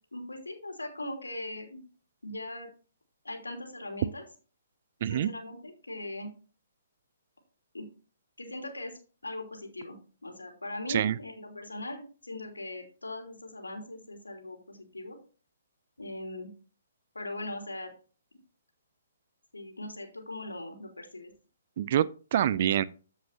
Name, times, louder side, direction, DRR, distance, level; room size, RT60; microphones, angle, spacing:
voice 1, 0.1-1.8 2.2-2.7 3.2-4.2 5.1-6.3 7.7-7.8 8.4-15.2 16.0-16.5 17.1-17.9 19.5-21.3, left 1 dB, 85° left, 3.1 m, -40 dB
voice 2, 21.8-22.8, right 10 dB, 45° right, 0.4 m, -26 dB
14.5 x 5.6 x 2.8 m
figure-of-eight pair, 130°, 0 cm